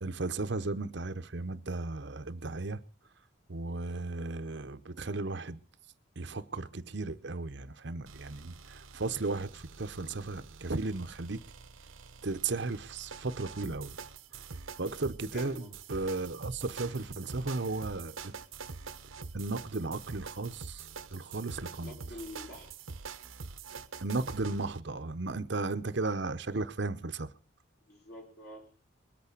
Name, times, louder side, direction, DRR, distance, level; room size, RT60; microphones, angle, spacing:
voice 1, 0.0-2.8 3.5-5.6 6.2-11.4 12.2-14.0 14.4-14.5 14.8-18.3 19.3-22.0 24.0-27.3, right 3 dB, 60° right, 0.9 m, -35 dB
sound 1, 8.1-24.8, right 5 dB, 80° right, 1.0 m, -46 dB
voice 2, 15.3-15.8 21.8-22.7 27.9-28.7, left 1 dB, 50° left, 4.7 m, -46 dB
21.5 x 8.4 x 6.7 m
head